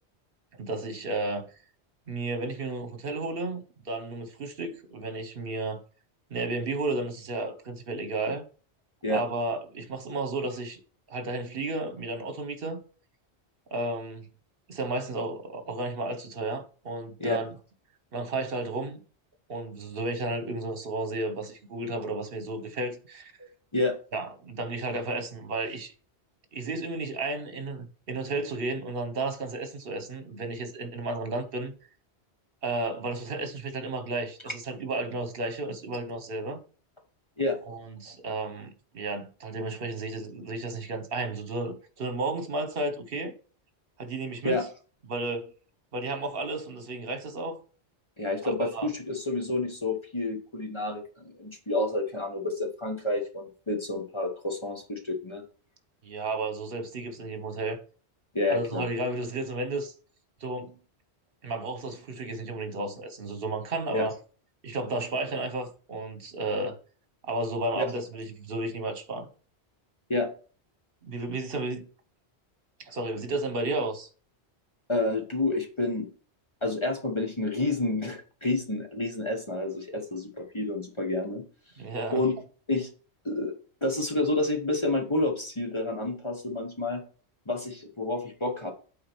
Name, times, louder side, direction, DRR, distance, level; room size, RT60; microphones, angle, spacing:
voice 1, 0.6-1.5 2.1-5.8 6.3-8.5 9.1-10.8 11.1-12.8 13.7-14.3 14.7-17.6 18.1-19.0 19.5-23.3 24.1-25.9 26.5-31.7 32.6-36.6 37.6-43.3 44.0-44.7 45.1-45.5 45.9-47.6 48.4-48.9 56.0-57.8 58.5-59.9 60.4-60.8 61.4-64.1 64.6-66.8 67.2-69.3 71.0-71.9 72.8-74.1 81.8-82.2, right 2 dB, 55° right, 1.3 m, -33 dB
voice 2, 48.2-55.4 58.3-58.9 63.9-64.1 67.7-67.8 70.1-70.3 74.9-76.1 76.6-81.4 82.1-82.4 82.7-82.9 83.2-83.5 83.8-87.0 87.5-88.7, left 2 dB, 25° left, 1.2 m, -29 dB
8.4 x 4.3 x 4.5 m
omnidirectional pair, 1.1 m